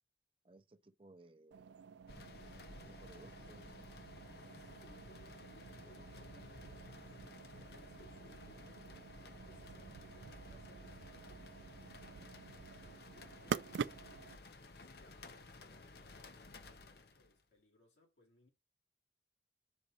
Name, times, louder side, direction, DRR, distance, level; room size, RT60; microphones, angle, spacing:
voice 1, 0.4-1.8 2.8-3.8, right 2 dB, 30° right, 0.5 m, -61 dB
sound 1, 1.5-14.4, right 6 dB, 85° right, 0.4 m, -48 dB
sound 2, 2.1-17.4, left 2 dB, 60° left, 0.8 m, -55 dB
voice 2, 4.4-8.9 9.4-14.4 14.8-18.5, left 1 dB, 85° left, 2.5 m, -67 dB
5.3 x 3.9 x 4.5 m
head